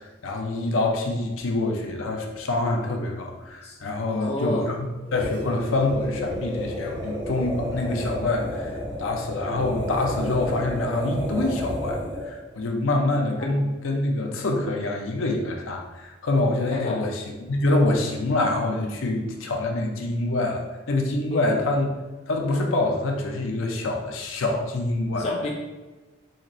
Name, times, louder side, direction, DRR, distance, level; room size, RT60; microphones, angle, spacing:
voice 1, 0.0-8.7 9.0-21.9 22.3-25.3, left 2 dB, 80° left, 2 dB, 0.6 m, -26 dB
voice 2, 4.1-4.7 16.7-17.0 21.3-21.6 25.2-25.5, left 1 dB, 30° left, -1 dB, 0.4 m, -29 dB
sound 1, 5.0-12.4, equal, 25° right, 1.2 m, -31 dB
4.0 x 2.5 x 3.0 m, 1.2 s
head